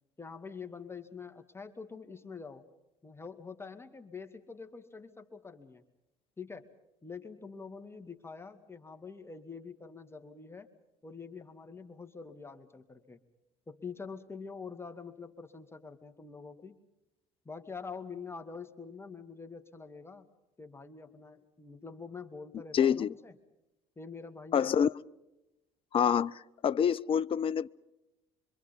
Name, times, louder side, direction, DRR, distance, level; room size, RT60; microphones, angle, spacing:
voice 1, 0.2-2.6 3.0-5.8 6.4-6.7 7.0-10.7 11.0-13.2 13.7-16.8 17.5-20.3 20.6-23.4 24.0-24.7, left 5 dB, 20° left, 7 dB, 2.2 m, -45 dB
voice 2, 22.7-23.1 24.5-24.9 25.9-27.7, left 8 dB, 40° left, 20 dB, 0.7 m, -27 dB
26.5 x 25.0 x 5.4 m, 0.93 s
hypercardioid pair, 60°, 13 cm